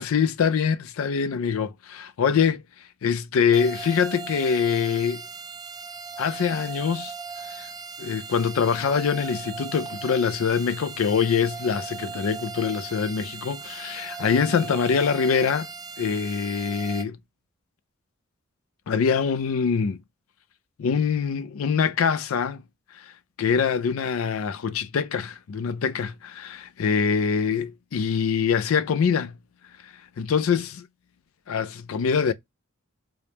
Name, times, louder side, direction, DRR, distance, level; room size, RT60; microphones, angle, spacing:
voice 1, 0.0-2.6 3.0-5.2 6.2-7.1 7.5-7.7 8.0-15.7 16.0-17.2 18.9-20.0 20.8-22.6 22.9-23.1 23.4-29.3 30.2-30.9 31.5-32.3, left 6 dB, 85° left, 0.4 m, -24 dB
sound 1, 3.5-17.0, right 5 dB, 20° right, 0.4 m, -38 dB
4.9 x 2.0 x 2.8 m
head